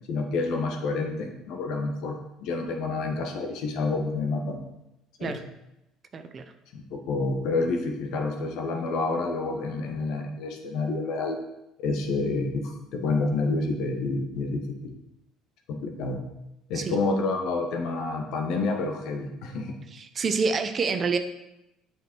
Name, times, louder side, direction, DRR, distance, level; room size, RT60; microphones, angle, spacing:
voice 1, 0.1-4.6 5.2-5.4 6.7-11.4 11.8-14.9 15.7-16.2 16.7-19.8, left 3 dB, 70° left, 3 dB, 1.3 m, -29 dB
voice 2, 6.1-6.4 16.7-17.0 19.9-21.2, right 4 dB, 40° right, 8 dB, 0.8 m, -27 dB
8.2 x 5.0 x 4.5 m, 0.89 s
supercardioid pair, 90°, 0 cm